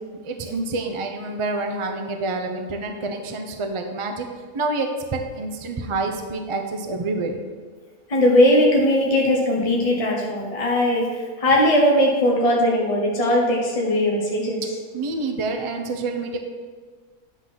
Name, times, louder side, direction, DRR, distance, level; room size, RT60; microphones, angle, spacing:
voice 1, 0.2-4.3 4.5-7.4 14.9-16.4, right 3 dB, 35° right, 4 dB, 0.5 m, -27 dB
voice 2, 8.1-14.6, left 1 dB, 25° left, -2 dB, 1.0 m, -19 dB
10.0 x 3.9 x 5.9 m, 1.5 s
omnidirectional pair, 1.5 m